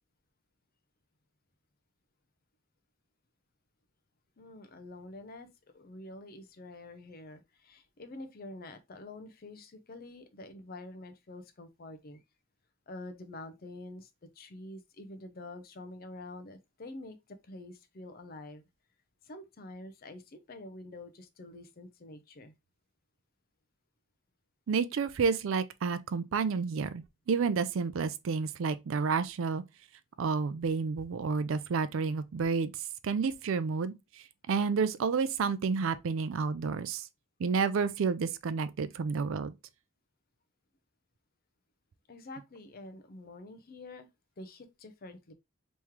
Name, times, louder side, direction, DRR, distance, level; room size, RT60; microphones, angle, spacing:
voice 1, 4.4-5.5 5.7-12.2 12.9-14.1 14.4-17.2 17.4-18.6 19.2-22.5 42.1-44.1 44.4-45.3, left 2 dB, 45° left, 0.5 m, -47 dB
voice 2, 24.7-29.6 30.2-32.7 33.0-33.9 34.5-37.0 37.4-39.5, right 5 dB, 65° right, 0.4 m, -30 dB
3.6 x 3.1 x 2.9 m
head